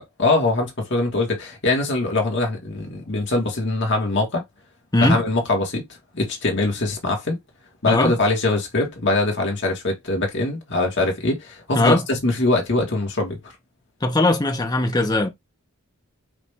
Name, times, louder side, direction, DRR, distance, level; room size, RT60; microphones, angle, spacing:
voice 1, 0.0-4.4 5.0-5.9 6.1-7.4 7.8-13.5, left 2 dB, 55° left, 1.5 m, -22 dB
voice 2, 14.0-15.3, left 2 dB, 20° left, 0.7 m, -19 dB
4.9 x 2.6 x 3.3 m
head